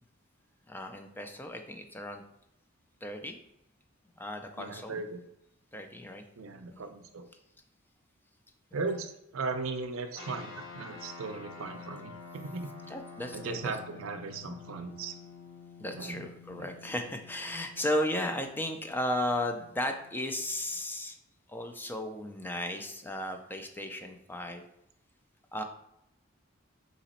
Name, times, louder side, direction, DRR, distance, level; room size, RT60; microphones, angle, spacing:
voice 1, 0.7-2.2 3.0-3.4 4.2-5.0 5.7-6.2 6.7-6.8 12.9-13.7 15.8-21.2 21.5-24.6 25.5-25.6, left 1 dB, 10° left, 5 dB, 0.4 m, -35 dB
voice 2, 4.6-5.2 6.4-7.3 8.7-12.7 13.3-15.1 15.9-16.2 16.5-16.7, right 3 dB, 80° right, 7 dB, 0.5 m, -37 dB
sound 1, 10.1-20.8, left 4 dB, 75° left, 1.5 m, -49 dB
4.1 x 2.9 x 4.1 m, 0.80 s
head